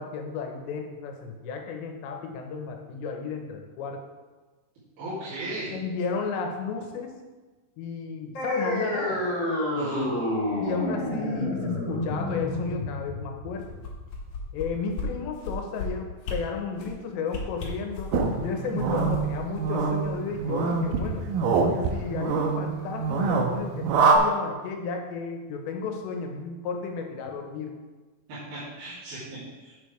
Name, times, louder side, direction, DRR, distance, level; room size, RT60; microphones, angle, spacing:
voice 1, 0.0-4.0 5.7-7.2 7.8-9.3 10.6-13.7 14.5-18.1 18.4-21.3 21.9-27.8, left 5 dB, 80° left, 3 dB, 3.2 m, -33 dB
voice 2, 5.0-5.7 9.7-10.1 28.3-29.7, right 1 dB, 60° right, -13 dB, 4.6 m, -37 dB
sound 1, 8.3-15.4, left 1 dB, 35° left, 3.8 m, -30 dB
sound 2, 13.6-14.7 15.0-15.1 15.4-15.9 16.2-16.4 16.8-17.0 17.3-18.4 18.8-20.4 20.7-20.8, left 6 dB, 65° left, 2.1 m, -36 dB
sound 3, 18.1-24.2, right 4 dB, 85° right, 1.9 m, -25 dB
10.0 x 8.7 x 3.4 m, 1.3 s
omnidirectional pair, 5.1 m